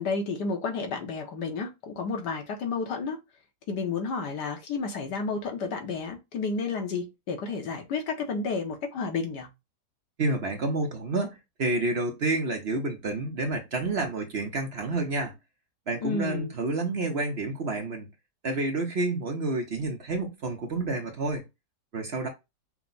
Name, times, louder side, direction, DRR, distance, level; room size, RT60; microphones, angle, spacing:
voice 1, 0.0-3.2 3.7-9.5 16.0-16.5, left 4 dB, 85° left, 1.7 m, -31 dB
voice 2, 10.2-15.3 15.9-18.1 18.4-21.4 21.9-22.3, right 2 dB, 50° right, 0.9 m, -29 dB
5.8 x 2.2 x 3.9 m
omnidirectional pair, 1.8 m